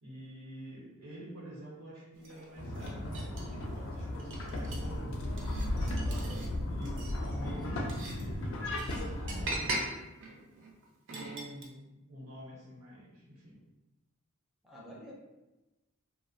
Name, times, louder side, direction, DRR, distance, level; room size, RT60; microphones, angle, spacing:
voice 1, 0.0-5.4 6.2-10.1 11.1-13.6, equal, 85° right, -4 dB, 0.9 m, -48 dB
sound 1, 2.2-3.7 4.1-4.9 5.4-6.5 6.8-11.6, right 2 dB, 60° right, 0.5 m, -41 dB
sound 2, 2.6-9.7, left 1 dB, 65° left, 0.4 m, -35 dB
voice 2, 6.0-6.5 14.6-15.1, equal, ahead, -5 dB, 0.4 m, -48 dB
2.4 x 2.0 x 2.6 m, 1.1 s
head